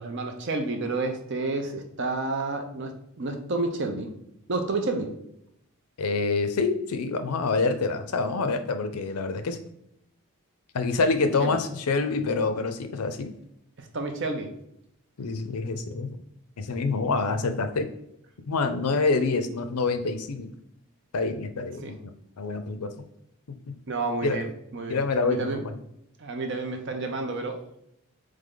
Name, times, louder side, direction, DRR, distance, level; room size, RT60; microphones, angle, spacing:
voice 1, 0.0-4.1 4.5-5.1 11.4-11.6 13.8-14.5 21.8-21.9 23.9-25.6 26.2-27.6, right 3 dB, 55° right, 5 dB, 0.6 m, -30 dB
voice 2, 6.0-9.6 10.7-13.3 15.2-16.2 16.6-17.9 18.5-20.5 21.1-22.1 22.4-22.9 23.7-23.8 24.2-24.4 24.9-25.6, left 3 dB, 85° left, 9 dB, 0.5 m, -26 dB
3.7 x 3.2 x 3.7 m, 0.77 s
head